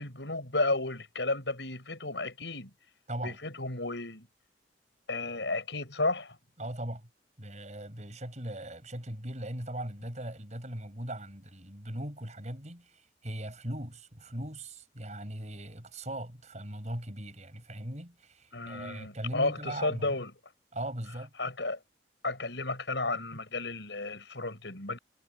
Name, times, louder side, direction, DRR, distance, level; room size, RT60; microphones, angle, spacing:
voice 1, 0.0-2.7 3.2-4.3 5.1-6.4 18.5-20.3 21.4-21.8 22.2-25.0, left 2 dB, 75° left, 6.5 m, -33 dB
voice 2, 6.6-7.1 7.4-20.1 20.7-21.3, right 1 dB, 40° right, 7.5 m, -39 dB
head